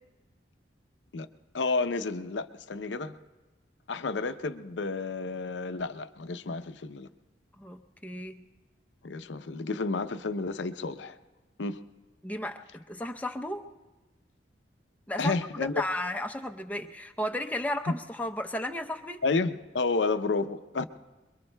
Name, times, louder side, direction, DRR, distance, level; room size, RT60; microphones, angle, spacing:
voice 1, 1.5-3.2 3.9-7.1 9.0-11.2 11.6-11.8 15.2-15.7 19.2-20.9, left 3 dB, 85° left, 10 dB, 0.6 m, -31 dB
voice 2, 7.6-8.4 12.2-13.6 15.1-19.2, left 1 dB, 10° left, 4 dB, 0.6 m, -34 dB
27.0 x 22.5 x 2.2 m, 1.2 s
head